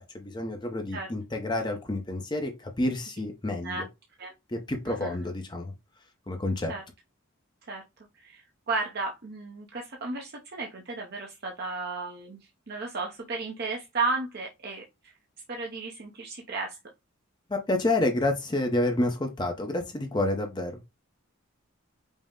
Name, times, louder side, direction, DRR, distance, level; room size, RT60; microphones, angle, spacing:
voice 1, 0.0-3.8 4.5-5.7 6.3-6.7 17.5-20.8, left 2 dB, 20° left, 0.6 m, -29 dB
voice 2, 8.1-12.4 12.7-15.1 15.5-16.8, right 3 dB, 45° right, 0.6 m, -34 dB
5.3 x 2.0 x 3.6 m
head